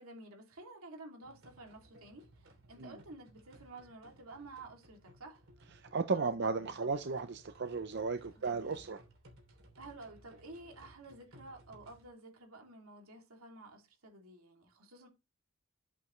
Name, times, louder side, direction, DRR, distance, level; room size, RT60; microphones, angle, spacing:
voice 1, 0.0-5.4 6.1-7.0 8.3-8.9 9.8-15.1, right 2 dB, 90° right, 2.8 m, -52 dB
sound 1, 1.2-12.1, right 1 dB, 70° right, 3.2 m, -61 dB
voice 2, 5.9-9.0, right 4 dB, 55° right, 0.6 m, -34 dB
9.2 x 8.3 x 3.2 m
head